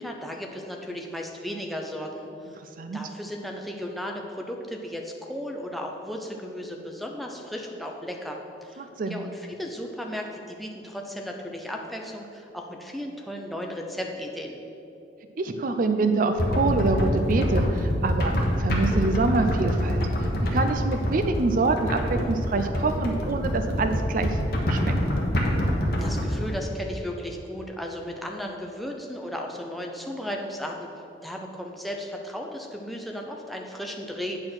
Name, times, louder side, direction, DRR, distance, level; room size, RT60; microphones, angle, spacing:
voice 1, 0.0-2.6 2.9-14.6 26.0-30.9 31.2-34.4, equal, ahead, 0 dB, 0.6 m, -35 dB
voice 2, 8.8-9.2 15.4-18.3 18.6-20.0 20.4-24.4 24.7-24.9, right 3 dB, 50° right, 7 dB, 0.4 m, -25 dB
sound 1, 16.4-26.5, equal, 55° left, 1.2 m, -26 dB
8.5 x 4.4 x 6.0 m, 2.9 s
head